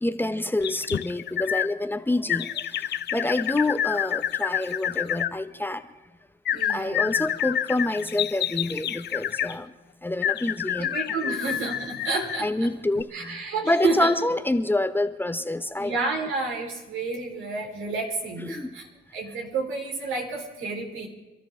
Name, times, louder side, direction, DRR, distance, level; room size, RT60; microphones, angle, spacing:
voice 1, 0.0-5.8 6.7-9.7 10.0-10.9 11.2-11.4 12.4-13.4 13.6-15.9 18.5-18.7, left 2 dB, 10° left, 10 dB, 0.9 m, -27 dB
sound 1, 0.6-1.7 2.3-5.3 6.4-9.5 10.2-12.5 12.9-13.0, left 10 dB, 60° left, 0.6 m, -28 dB
voice 2, 6.5-7.2 10.8-12.7 13.1-14.1 15.8-18.9 19.1-21.1, right 3 dB, 85° right, 1 dB, 4.4 m, -30 dB
27.0 x 13.0 x 3.7 m, 1.2 s
cardioid pair, 90°, 20 cm